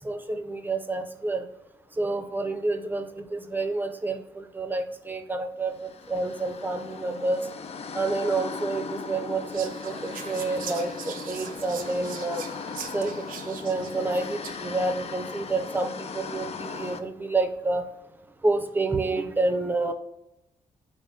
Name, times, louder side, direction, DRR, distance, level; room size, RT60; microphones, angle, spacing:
voice 1, 0.0-1.5 1.9-7.5 7.9-12.4 12.9-17.9 18.4-19.9, right 3 dB, 15° right, 7 dB, 0.6 m, -29 dB
sound 1, 5.7-17.0, left 5 dB, 50° left, 0.4 m, -38 dB
Whispering, 9.5-14.8, right 7 dB, 85° right, 0.5 m, -41 dB
3.5 x 3.4 x 2.7 m, 0.87 s
cardioid pair, 65°, 14 cm